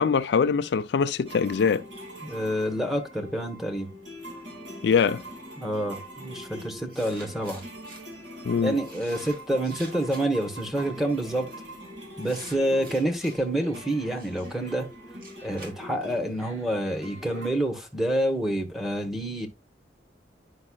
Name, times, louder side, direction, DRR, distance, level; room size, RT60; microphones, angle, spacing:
voice 1, 0.0-1.8 4.8-5.2 8.5-8.8, left 6 dB, 65° left, 0.4 m, -23 dB
sound 1, 1.3-17.5, equal, 75° right, 2.6 m, -43 dB
voice 2, 2.2-3.9 5.6-7.6 8.6-11.5 12.2-14.9 15.4-19.5, right 1 dB, ahead, 1.0 m, -28 dB
sound 2, 6.3-6.4 6.9-8.0 8.8-10.4 11.3-11.6 12.2-13.4 14.2-16.4, right 2 dB, 55° right, 2.3 m, -48 dB
9.7 x 5.3 x 2.3 m
head